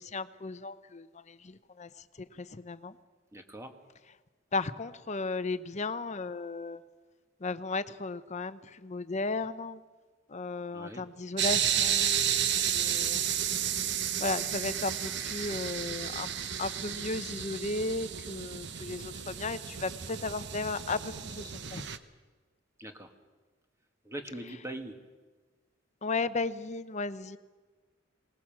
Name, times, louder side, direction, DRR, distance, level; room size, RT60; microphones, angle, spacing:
voice 1, 0.0-1.9 2.2-3.0 4.5-6.8 7.4-9.8 10.3-13.2 14.2-16.3 16.6-21.9 26.0-27.4, left 3 dB, 35° left, 13 dB, 0.8 m, -35 dB
voice 2, 3.3-3.7 10.7-11.0 22.8-23.1 24.0-25.0, right 1 dB, 15° right, 5 dB, 1.9 m, -41 dB
sound 1, 11.4-22.0, right 9 dB, 60° right, 1.0 m, -32 dB
23.0 x 20.0 x 7.4 m, 1.4 s
head